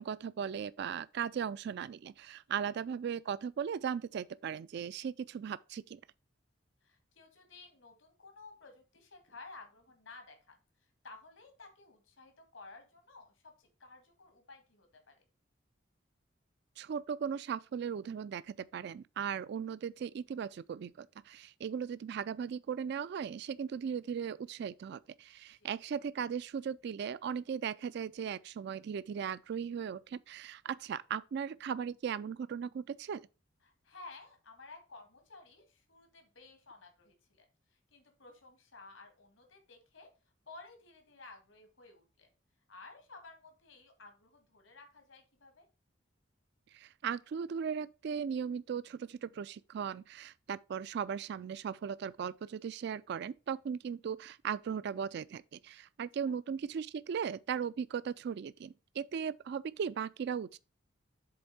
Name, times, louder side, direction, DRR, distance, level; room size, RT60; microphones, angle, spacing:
voice 1, 0.0-6.0 16.8-33.3 46.7-60.6, right 7 dB, 60° right, 0.3 m, -37 dB
voice 2, 6.8-10.6 11.0-15.1 25.6-25.7 33.6-40.1 40.5-42.3 42.7-45.7 56.2-56.4, left 3 dB, 80° left, 1.9 m, -54 dB
7.8 x 3.6 x 5.4 m
head